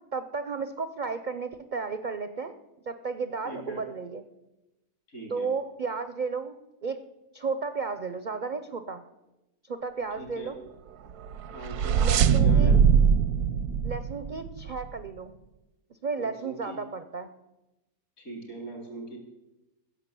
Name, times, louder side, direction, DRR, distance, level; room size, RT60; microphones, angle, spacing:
voice 1, 0.1-2.5 2.9-4.2 5.3-7.0 7.3-9.0 9.6-10.6 11.9-12.7 13.8-15.3 16.0-17.3, right 4 dB, 55° right, 10 dB, 0.5 m, -33 dB
voice 2, 3.4-3.8 5.1-5.5 10.2-10.6 11.5-12.8 16.1-16.8 18.2-19.2, right 2 dB, 70° left, 2 dB, 4.1 m, -39 dB
sound 1, 11.2-14.8, right 7 dB, 85° right, 1.2 m, -22 dB
16.0 x 6.6 x 8.2 m, 0.99 s
omnidirectional pair, 1.6 m